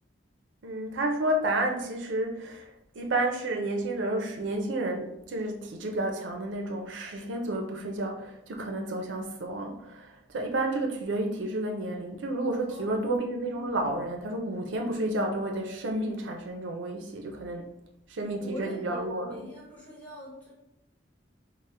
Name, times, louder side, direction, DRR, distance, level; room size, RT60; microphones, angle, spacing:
voice 1, 0.6-2.7 2.9-17.7 18.1-19.4, right 1 dB, 90° right, 3 dB, 0.5 m, -31 dB
voice 2, 12.7-13.5 18.4-20.5, equal, 10° left, -6 dB, 1.1 m, -42 dB
4.3 x 2.0 x 3.3 m, 0.83 s
head